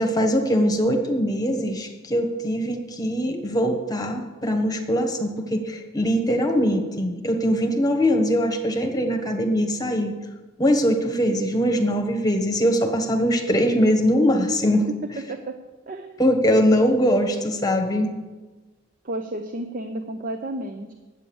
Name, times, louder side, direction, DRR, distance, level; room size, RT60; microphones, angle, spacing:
voice 1, 0.0-10.1 10.6-14.9 16.2-18.1, equal, 20° left, 3 dB, 1.2 m, -22 dB
voice 2, 15.9-16.2 19.0-20.9, right 1 dB, 40° right, 7 dB, 0.6 m, -32 dB
9.8 x 8.2 x 7.0 m, 1.2 s
head